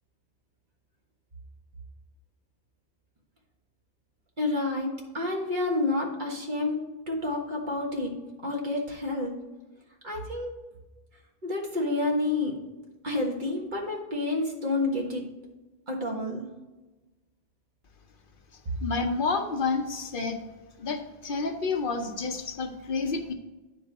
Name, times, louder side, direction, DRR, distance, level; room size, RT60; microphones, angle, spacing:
voice 1, 4.4-6.8 7.1-8.1 8.4-9.3 10.0-10.5 11.4-12.5 13.0-15.2 15.9-16.5, left 2 dB, 50° right, -1 dB, 1.6 m, -29 dB
voice 2, 18.8-20.4 20.8-23.3, left 4 dB, 60° left, 4 dB, 1.0 m, -29 dB
9.3 x 5.2 x 4.1 m, 1.1 s
omnidirectional pair, 1.0 m